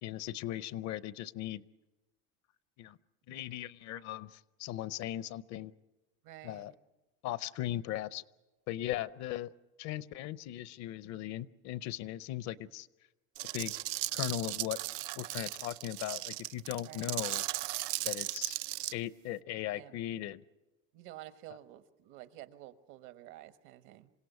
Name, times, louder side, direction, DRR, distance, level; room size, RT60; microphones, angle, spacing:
voice 1, 0.0-1.6 2.8-3.0 3.3-5.7 6.4-6.7 7.2-8.2 8.7-9.5 9.8-12.9 13.5-13.7 14.1-14.8 15.2-17.4 18.0-18.6 18.9-20.4, left 13 dB, 50° left, 17 dB, 0.7 m, -38 dB
voice 2, 6.2-6.7 16.9-17.1 19.7-20.0 20.9-24.1, right 14 dB, 60° right, 11 dB, 1.3 m, -51 dB
sound 1, 13.4-18.9, right 17 dB, 85° right, 0.7 m, -36 dB
27.0 x 17.0 x 8.2 m, 1.1 s
cardioid pair, 150°, 34 cm